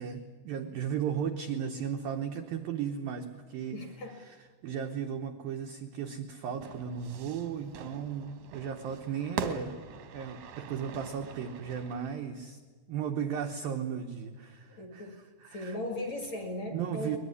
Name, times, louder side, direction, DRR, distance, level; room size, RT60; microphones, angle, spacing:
voice 1, 0.0-3.8 4.6-9.7 10.1-12.6 12.9-15.2 15.4-15.8 16.7-17.2, right 8 dB, 80° right, 4 dB, 2.0 m, -35 dB
voice 2, 3.7-4.2 14.7-15.2 15.5-17.2, left 1 dB, 50° left, 4 dB, 2.3 m, -37 dB
Fire / Fireworks, 6.6-12.2, right 6 dB, 65° right, 1.9 m, -42 dB
22.0 x 21.5 x 9.7 m, 1.5 s
omnidirectional pair, 5.8 m